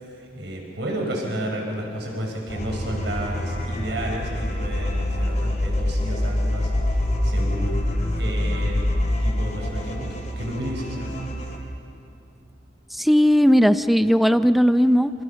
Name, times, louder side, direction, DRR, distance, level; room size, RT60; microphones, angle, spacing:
voice 1, 0.4-6.7 7.2-7.8 8.2-8.8 9.2-11.3, right 1 dB, 80° right, 0 dB, 5.5 m, -31 dB
sound 1, 2.5-11.6, left 1 dB, 45° left, 3.7 m, -25 dB
voice 2, 12.9-15.1, equal, ahead, 11 dB, 0.5 m, -17 dB
29.0 x 27.0 x 5.8 m, 2.7 s
head